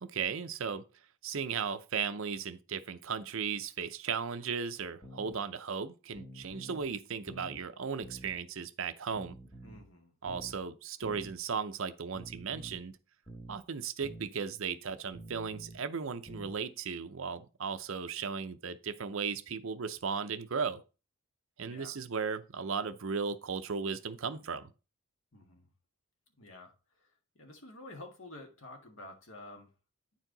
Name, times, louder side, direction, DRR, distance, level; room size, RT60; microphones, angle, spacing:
voice 1, 0.0-0.8 1.2-9.4 10.2-13.0 13.5-20.8 21.6-24.7, right 6 dB, 60° right, 0.6 m, -36 dB
sound 1, 5.0-5.3 6.1-6.9 7.3-7.6 8.0-8.4 9.1-9.9 10.3-10.6 11.0-11.4 12.1-12.8 13.3-13.6 14.0-14.3 15.1-15.8 16.3-16.6, right 1 dB, 15° left, 1.2 m, -48 dB
voice 2, 9.6-10.1 21.6-22.0 25.3-25.7 26.4-29.7, left 2 dB, 60° left, 1.7 m, -50 dB
9.4 x 4.6 x 3.9 m
head